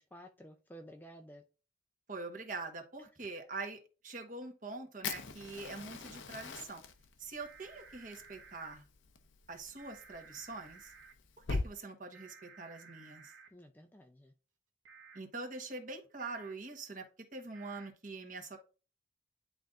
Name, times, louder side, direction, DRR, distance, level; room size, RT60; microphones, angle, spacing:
voice 1, 0.0-1.4 13.5-14.3, equal, 10° left, 4 dB, 0.4 m, -53 dB
voice 2, 2.1-6.8 7.2-8.8 9.5-10.9 11.5-13.3 15.1-17.1 17.3-18.6, right 3 dB, 45° right, 4 dB, 1.2 m, -44 dB
Fire, 5.0-11.7, left 4 dB, 80° left, 0.7 m, -43 dB
sound 1, 7.4-8.8 9.8-11.1 12.1-13.5 14.9-15.2 16.2-16.5 17.5-17.9, right 5 dB, 85° right, 1.0 m, -56 dB
10.5 x 3.9 x 2.5 m, 0.34 s
head